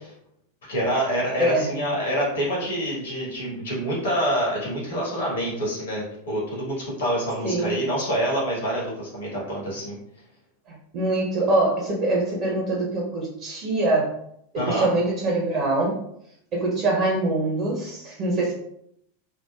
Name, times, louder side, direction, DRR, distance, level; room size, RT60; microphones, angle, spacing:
voice 1, 0.7-10.0 14.5-14.9, equal, 65° left, -4 dB, 1.3 m, -26 dB
voice 2, 1.4-1.7 7.4-7.8 10.7-14.1 14.5-16.0 16.5-18.5, right 2 dB, 40° right, -3 dB, 1.0 m, -24 dB
4.3 x 2.3 x 2.3 m, 0.73 s
figure-of-eight pair, 90°, 0 cm